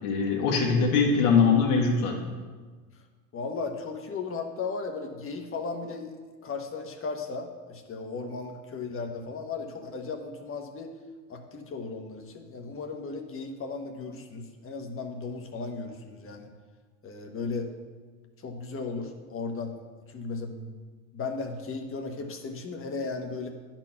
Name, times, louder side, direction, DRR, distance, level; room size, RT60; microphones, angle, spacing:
voice 1, 0.0-2.2, left 5 dB, 70° left, -1 dB, 1.8 m, -22 dB
voice 2, 3.3-6.1 6.4-10.9 11.3-16.5 17.0-17.7 18.4-19.7 20.1-20.8 21.1-23.5, left 4 dB, 30° left, 4 dB, 1.2 m, -36 dB
10.5 x 4.5 x 5.8 m, 1.4 s
supercardioid pair, 105°, 44 cm